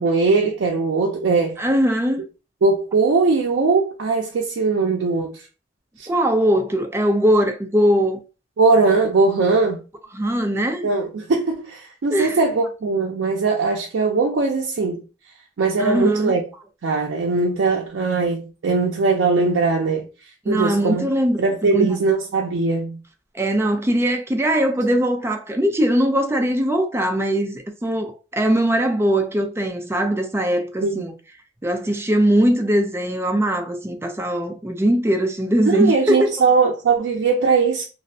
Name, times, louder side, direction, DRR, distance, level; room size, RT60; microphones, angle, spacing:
voice 1, 0.0-1.6 2.6-5.4 6.0-6.1 8.6-9.8 10.8-15.0 15.6-16.4 16.8-20.1 20.5-21.1 21.4-23.0 30.8-31.0 35.7-37.8, right 4 dB, 85° right, 0.4 m, -20 dB
voice 2, 1.6-2.2 6.1-8.2 10.1-10.9 12.1-12.4 15.8-16.4 20.5-21.9 23.3-31.1 31.6-36.3, equal, 15° right, 0.4 m, -20 dB
2.5 x 2.0 x 2.6 m
head